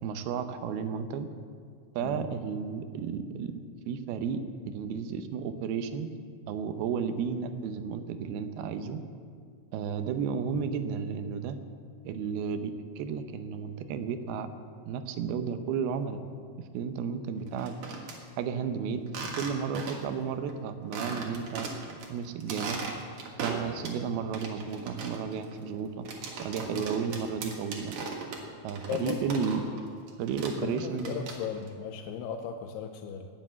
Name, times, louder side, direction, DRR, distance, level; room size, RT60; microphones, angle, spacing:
voice 1, 0.0-1.3 2.0-3.5 3.9-4.4 4.7-6.1 6.5-9.0 9.7-11.6 12.0-14.5 14.9-16.2 16.7-17.7 18.4-19.0 19.4-21.7 22.1-22.8 23.4-26.1 26.4-27.9 28.6-29.6 30.2-31.3, right 6 dB, 80° right, 9 dB, 2.7 m, -33 dB
sound 1, 17.5-18.2 19.1-20.2 20.5-20.6 20.9-22.1 22.4-24.0 24.3-29.8 30.1-31.7, right 4 dB, 60° right, 2.7 m, -38 dB
voice 2, 28.9-29.4 30.6-33.3, left 8 dB, 90° left, 6 dB, 2.7 m, -36 dB
19.0 x 7.7 x 7.4 m, 2.1 s
omnidirectional pair, 4.6 m